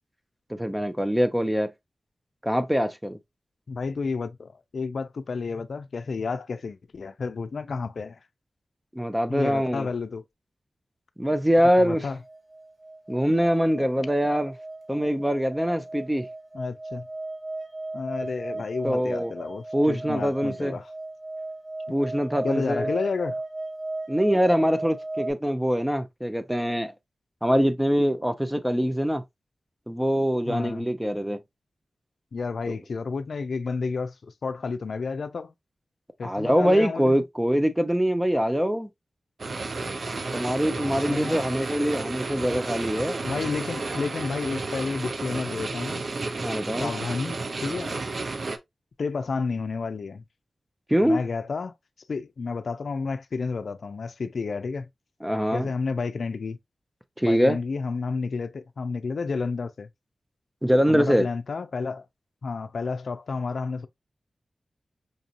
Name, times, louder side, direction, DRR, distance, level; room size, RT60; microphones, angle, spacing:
voice 1, 0.5-1.7 2.4-3.2 8.9-9.9 11.2-12.0 13.1-14.5 14.9-16.3 18.8-19.3 19.7-20.7 21.9-22.9 24.1-26.9 27.4-29.2 29.9-31.4 36.2-38.9 40.3-43.2 46.4-46.9 50.9-51.2 55.2-55.7 57.2-57.6 60.6-61.3, equal, 5° right, 0.6 m, -23 dB
voice 2, 3.7-8.2 9.3-10.2 11.8-12.2 16.5-17.1 17.9-20.9 22.4-23.4 30.5-30.9 32.3-35.5 36.2-37.1 40.8-41.4 43.2-46.0 46.8-48.0 49.0-50.2 51.0-51.7 52.1-54.9 55.5-56.6 57.2-59.9 60.9-62.1 62.4-63.9, left 4 dB, 75° left, 0.4 m, -31 dB
sound 1, 12.0-25.3, right 2 dB, 40° right, 2.4 m, -36 dB
sound 2, 39.4-48.6, right 3 dB, 65° right, 0.6 m, -32 dB
5.2 x 2.8 x 2.4 m
cardioid pair, 60°, 0 cm